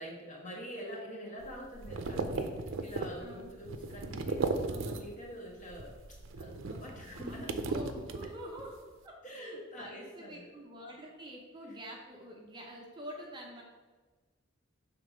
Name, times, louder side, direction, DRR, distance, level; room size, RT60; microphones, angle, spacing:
voice 1, 0.0-7.5 8.2-8.3 9.2-10.5 11.6-11.8, equal, 40° left, -3 dB, 1.7 m, -45 dB
sound 1, 1.4-5.3 5.6-8.7, right 3 dB, 75° right, 0.5 m, -37 dB
voice 2, 3.2-3.5 7.0-13.6, equal, 25° right, -1 dB, 0.8 m, -47 dB
6.6 x 3.5 x 5.0 m, 1.3 s
head